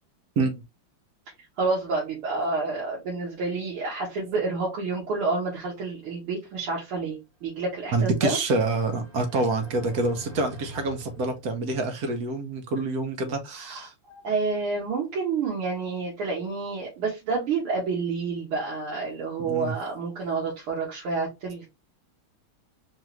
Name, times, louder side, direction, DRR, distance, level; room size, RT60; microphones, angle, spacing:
voice 1, 1.6-8.4 13.6-21.7, right 4 dB, 80° right, 2.1 m, -29 dB
sound 1, 7.6-12.0, equal, 30° right, 1.2 m, -46 dB
voice 2, 7.9-13.9 19.4-19.7, right 3 dB, 60° right, 1.1 m, -27 dB
4.6 x 2.4 x 3.1 m
omnidirectional pair, 2.3 m